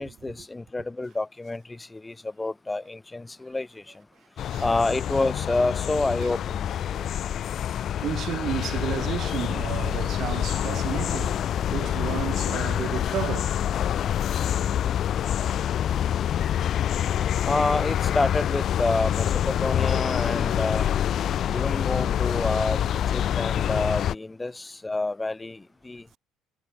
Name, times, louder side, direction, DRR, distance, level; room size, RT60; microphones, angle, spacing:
voice 1, 0.0-3.8 4.6-6.7 17.5-20.9 21.5-22.8 23.1-26.0, left 2 dB, 10° left, 1.0 m, -28 dB
sound 1, 4.4-24.1, left 10 dB, 40° left, 0.9 m, -26 dB
voice 2, 7.8-13.6 15.9-16.0 21.9-23.0, right 11 dB, 45° right, 2.2 m, -33 dB
cardioid pair, 155°, 0 cm